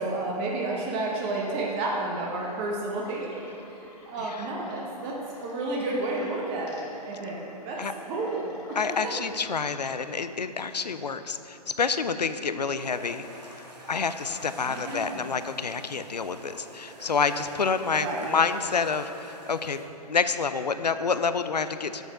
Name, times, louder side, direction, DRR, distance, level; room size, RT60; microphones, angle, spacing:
voice 1, 0.0-3.3 3.7-8.8 9.0-9.1 14.7-15.4 17.9-18.4, right 2 dB, 25° right, -2 dB, 0.9 m, -31 dB
sound 1, 2.3-10.3, left 3 dB, 45° left, 1.5 m, -51 dB
voice 2, 8.8-13.2 13.5-19.8 20.1-22.0, left 5 dB, 90° left, 11 dB, 0.4 m, -28 dB
sound 2, 12.8-19.9, right 1 dB, 85° right, 1.4 m, -46 dB
7.8 x 5.0 x 5.4 m, 2.9 s
figure-of-eight pair, 125°, 21 cm